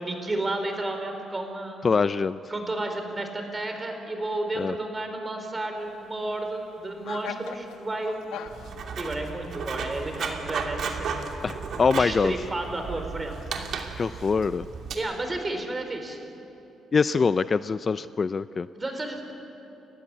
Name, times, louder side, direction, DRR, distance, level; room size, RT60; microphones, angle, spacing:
voice 1, 0.0-1.8 2.5-8.2 9.0-11.3 11.9-13.4 14.9-16.2 18.7-19.3, right 2 dB, 25° right, 5 dB, 4.4 m, -32 dB
voice 2, 1.8-2.4 4.6-4.7 11.4-12.3 14.0-14.7 16.9-18.7, left 5 dB, 35° left, 14 dB, 0.5 m, -24 dB
sound 1, 5.8-14.0, left 9 dB, 90° left, 1.1 m, -46 dB
Writing, 8.5-14.9, right 5 dB, 65° right, 2.7 m, -34 dB
30.0 x 15.0 x 9.8 m, 2.9 s
cardioid pair, 90°, 0 cm